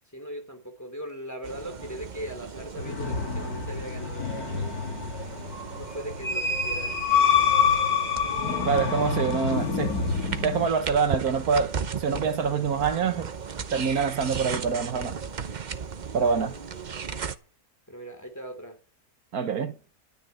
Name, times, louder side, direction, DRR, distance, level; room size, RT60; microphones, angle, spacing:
voice 1, 0.1-4.7 5.2-5.4 5.7-7.3 16.2-16.5 17.9-18.8, equal, 10° left, 2.6 m, -39 dB
sound 1, 1.4-17.3, right 6 dB, 40° right, 0.7 m, -36 dB
sound 2, 2.7-10.7, left 6 dB, 80° left, 2.3 m, -27 dB
voice 2, 8.6-9.9 10.4-11.7 12.0-13.3 13.7-15.1 16.1-16.5 19.3-19.7, right 6 dB, 80° right, 1.7 m, -25 dB
12.5 x 6.7 x 9.1 m
omnidirectional pair, 1.6 m